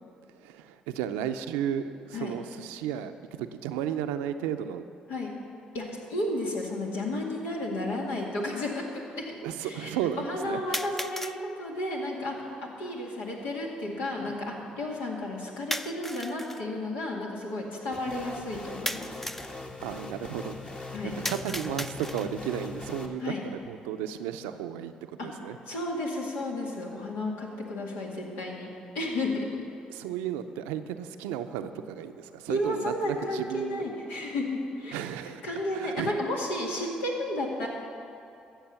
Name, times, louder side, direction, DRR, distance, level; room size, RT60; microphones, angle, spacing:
voice 1, 0.4-3.1 3.4-4.8 9.4-10.8 14.2-14.3 19.8-24.9 25.2-25.6 29.9-33.8 34.9-35.4 35.7-36.1, right 9 dB, 90° right, 9 dB, 0.5 m, -34 dB
voice 2, 5.7-12.4 12.6-19.1 20.9-21.2 23.2-23.4 25.2-25.3 25.7-28.7 28.9-29.5 32.5-37.7, left 1 dB, 85° left, -2 dB, 2.1 m, -33 dB
sound 1, 6.4-6.5 7.4-7.5 10.7-11.4 15.7-16.6 18.9-19.6 21.2-22.4, equal, 10° left, 0.5 m, -35 dB
sound 2, 17.9-23.1, left 3 dB, 35° left, 1.5 m, -41 dB
14.0 x 7.2 x 7.0 m, 2.7 s
supercardioid pair, 55°, 3 cm